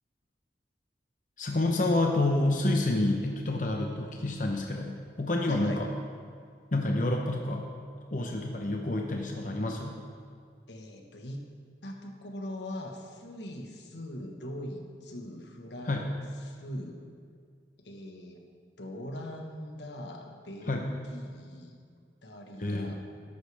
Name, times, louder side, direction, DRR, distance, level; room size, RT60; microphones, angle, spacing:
voice 1, 1.4-5.9 6.7-7.7 8.1-10.0 15.9-16.1 20.7-20.9 22.6-22.9, left 2 dB, 45° left, 1 dB, 0.8 m, -28 dB
voice 2, 5.5-5.9 10.7-11.4 11.8-17.0 17.8-18.4 18.8-21.8 22.2-22.9, left 1 dB, 85° left, 2 dB, 1.4 m, -41 dB
13.5 x 11.5 x 3.5 m, 2.1 s
head